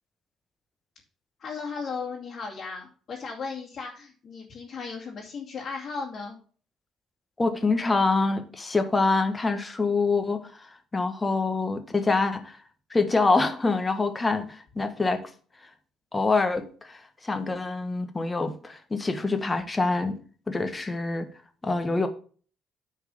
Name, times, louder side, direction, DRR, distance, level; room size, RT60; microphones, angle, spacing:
voice 1, 1.4-6.4, left 5 dB, 55° left, 2.5 m, -36 dB
voice 2, 7.4-10.4 10.9-12.6 12.9-15.2 16.1-20.2 20.5-21.3 21.6-22.1, left 3 dB, 25° left, 1.6 m, -25 dB
9.4 x 4.7 x 5.5 m
supercardioid pair, 60°, 0 cm